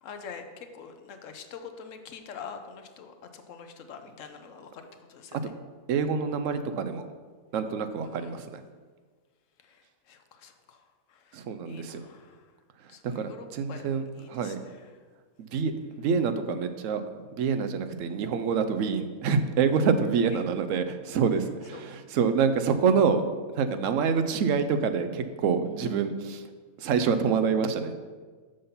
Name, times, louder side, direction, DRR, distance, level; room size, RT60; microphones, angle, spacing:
voice 1, 0.0-5.5 8.0-8.4 9.6-12.5 12.9-15.0 20.3-20.5 21.7-22.0 24.0-24.3, left 6 dB, 65° left, 7 dB, 1.0 m, -46 dB
voice 2, 5.9-7.0 7.5-8.6 11.3-12.0 13.0-14.0 14.3-14.6 15.4-15.7 16.0-17.0 17.3-23.2 23.5-26.4 26.8-27.9, right 6 dB, 65° right, 9 dB, 0.9 m, -26 dB
6.6 x 5.5 x 5.6 m, 1.5 s
omnidirectional pair, 1.5 m